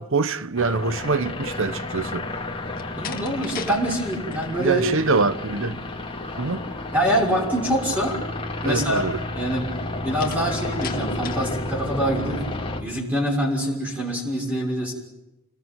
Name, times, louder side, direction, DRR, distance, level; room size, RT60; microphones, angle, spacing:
voice 1, 0.0-2.3 4.6-5.8 6.4-6.6 8.6-9.2, right 3 dB, 65° right, 1.2 m, -24 dB
sound 1, 0.6-12.8, left 2 dB, 25° left, 3.1 m, -31 dB
Slam, 2.7-3.8 4.1-4.6 10.2-11.5, left 7 dB, 45° left, 2.3 m, -37 dB
voice 2, 2.9-4.8 6.9-8.2 8.6-9.0 9.4-9.7 10.0-12.4 12.8-14.9, right 1 dB, 10° right, 6.2 m, -25 dB
28.5 x 20.5 x 9.2 m
head